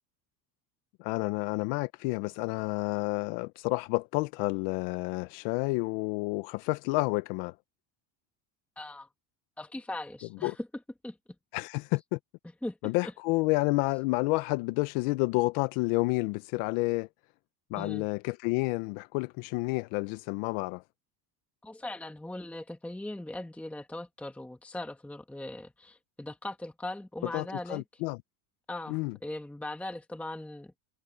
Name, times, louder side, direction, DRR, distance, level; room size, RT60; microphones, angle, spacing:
voice 1, 1.0-7.5 10.4-10.5 11.5-12.2 12.8-17.1 17.7-20.8 27.3-28.2 28.9-29.1, left 24 dB, 70° left, 0.8 m, -30 dB
voice 2, 8.8-9.1 9.6-10.7 11.0-11.2 12.6-12.8 13.0-13.1 17.8-18.1 21.6-27.8 28.7-30.7, left 1 dB, 5° left, 1.4 m, -39 dB
cardioid pair, 145°, 49 cm